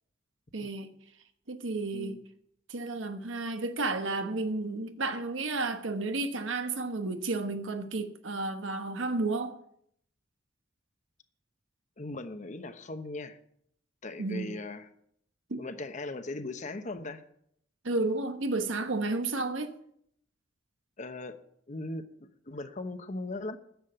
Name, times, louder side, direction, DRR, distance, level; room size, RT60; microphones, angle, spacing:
voice 1, 0.5-0.9 1.5-2.2 2.7-9.6 14.2-14.6 15.5-15.6 17.8-19.7, right 3 dB, 90° right, 1.2 m, -32 dB
voice 2, 12.0-13.4 14.0-14.9 15.6-17.2 21.0-21.3 21.7-23.6, left 2 dB, 40° left, 0.9 m, -38 dB
10.5 x 7.4 x 8.7 m
head